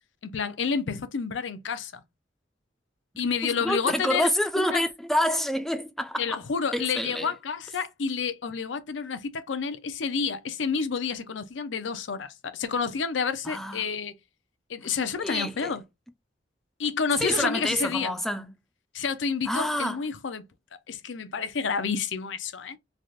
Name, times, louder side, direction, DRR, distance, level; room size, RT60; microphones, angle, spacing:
voice 1, 0.2-2.0 3.2-4.3 4.6-4.8 6.2-14.1 14.7-15.8 16.8-18.2 18.9-20.5 20.9-22.8, left 5 dB, 90° left, 0.6 m, -29 dB
voice 2, 3.4-6.4 6.7-7.3 13.4-13.8 15.2-15.7 17.2-18.5 19.5-20.0, left 1 dB, ahead, 0.4 m, -27 dB
3.4 x 2.4 x 2.5 m
head